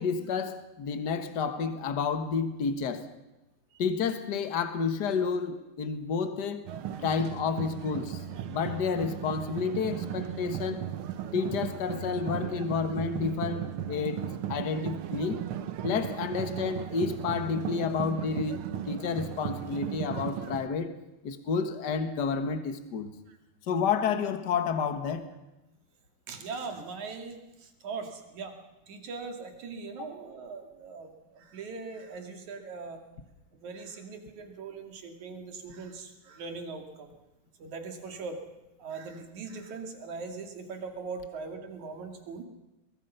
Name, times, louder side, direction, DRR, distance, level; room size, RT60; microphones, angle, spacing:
voice 1, 0.0-3.1 3.8-6.6 7.0-10.8 11.3-15.4 15.8-21.0 21.2-23.1 23.7-25.3 30.0-30.1, left 5 dB, 45° left, 1.7 m, -30 dB
sound 1, 6.7-20.7, right 10 dB, 65° right, 1.5 m, -36 dB
voice 2, 26.3-28.5 28.9-33.0 33.6-37.1 37.6-38.4 38.8-42.4, right 4 dB, 80° right, 3.7 m, -40 dB
23.0 x 22.0 x 5.7 m
omnidirectional pair, 3.3 m